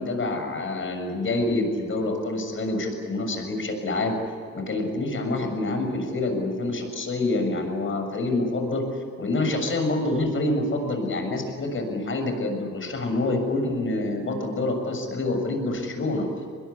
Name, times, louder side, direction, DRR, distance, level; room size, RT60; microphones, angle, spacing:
voice 1, 0.0-4.2 4.5-8.9 9.2-16.3, left 2 dB, 40° left, 5 dB, 7.0 m, -27 dB
23.0 x 21.0 x 9.7 m, 2.3 s
cardioid pair, 90°, 30 cm